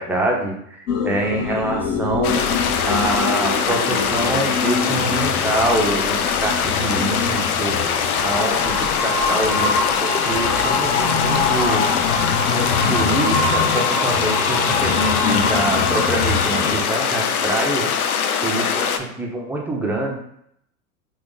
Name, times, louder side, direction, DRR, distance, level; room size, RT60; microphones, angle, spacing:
voice 1, 0.0-2.4 2.8-7.8 8.2-11.8 12.5-17.9 18.4-20.2, right 2 dB, 5° right, -1 dB, 0.5 m, -25 dB
sound 1, 0.9-16.8, left 4 dB, 40° left, 0.6 m, -24 dB
sound 2, 2.2-19.0, left 7 dB, 85° left, 0.5 m, -22 dB
3.1 x 2.5 x 3.6 m, 0.73 s
hypercardioid pair, 95°, 42 cm